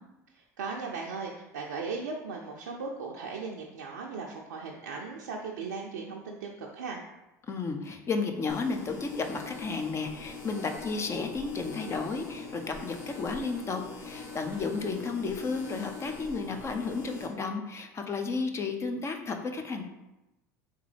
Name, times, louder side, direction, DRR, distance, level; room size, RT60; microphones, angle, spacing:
voice 1, 0.4-7.0, right 4 dB, 80° right, -1 dB, 0.4 m, -37 dB
voice 2, 7.5-19.8, left 4 dB, 30° left, 5 dB, 0.5 m, -33 dB
sound 1, 8.5-17.3, left 3 dB, 55° left, 1.2 m, -43 dB
3.6 x 3.2 x 3.3 m, 0.96 s
hypercardioid pair, 80°, 9 cm